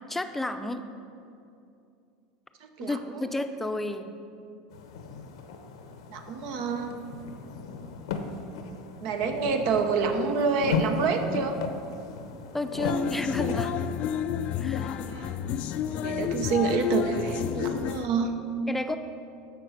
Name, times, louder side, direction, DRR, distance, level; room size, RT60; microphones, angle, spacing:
voice 1, 0.1-0.8 2.8-4.1 12.5-13.7 14.6-15.0 18.7-19.0, left 2 dB, 5° left, 8 dB, 0.6 m, -31 dB
voice 2, 2.6-3.2 6.1-6.9 9.0-11.6 15.0-15.4 16.0-18.3, right 5 dB, 65° right, 5 dB, 0.9 m, -28 dB
sound 1, 4.7-13.7, left 5 dB, 85° left, 0.8 m, -35 dB
sound 2, 12.8-18.1, left 8 dB, 55° left, 0.4 m, -30 dB
8.5 x 5.9 x 6.5 m, 2.6 s
supercardioid pair, 110°, 3 cm